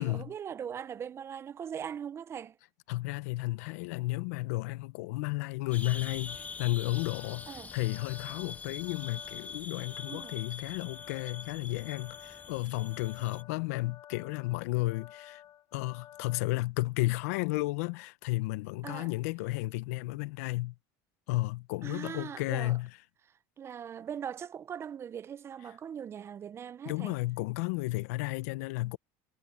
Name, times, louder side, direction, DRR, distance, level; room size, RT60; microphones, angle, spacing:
voice 1, 0.0-2.6 7.5-7.7 10.1-10.4 13.2-13.3 18.8-19.1 21.8-22.8 23.6-27.2, right 8 dB, 30° right, 0.5 m, -40 dB
voice 2, 2.9-15.4 15.7-20.7 21.3-22.9 26.8-29.0, left 20 dB, 80° left, 0.9 m, -33 dB
sound 1, 5.7-13.4, left 5 dB, 20° left, 0.5 m, -44 dB
sound 2, 6.3-16.5, left 11 dB, 45° left, 4.8 m, -53 dB
supercardioid pair, 105°, 8 cm